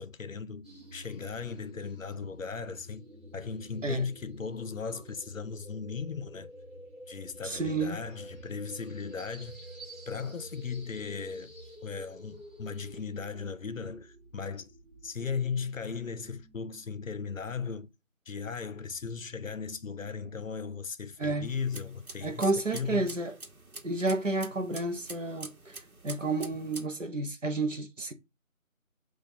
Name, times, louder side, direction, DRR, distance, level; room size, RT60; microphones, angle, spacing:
voice 1, 0.0-6.5 7.1-9.6 10.1-11.5 11.8-14.7 15.0-17.9 18.3-23.2, left 5 dB, 65° left, 0.5 m, -37 dB
sound 1, 0.6-17.8, equal, 30° right, 1.5 m, -50 dB
voice 2, 7.4-8.0 21.2-21.5 22.2-23.3 23.8-28.1, right 2 dB, 60° right, 0.8 m, -31 dB
sound 2, 21.4-26.9, right 2 dB, 80° right, 1.1 m, -47 dB
5.7 x 2.4 x 2.8 m
figure-of-eight pair, 170°, 42 cm